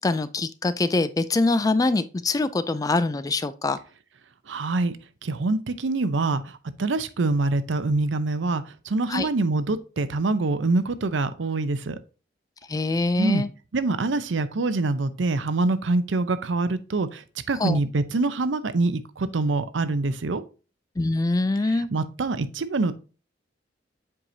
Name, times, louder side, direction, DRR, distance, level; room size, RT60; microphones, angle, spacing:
voice 1, 0.0-3.8 9.1-9.3 12.7-13.5 17.6-17.8 21.0-21.9, left 2 dB, 20° left, 0.3 m, -24 dB
voice 2, 4.5-4.9 5.2-12.0 13.2-13.4 13.7-20.4 21.9-22.9, right 3 dB, 85° right, 0.6 m, -25 dB
7.6 x 4.7 x 2.7 m
head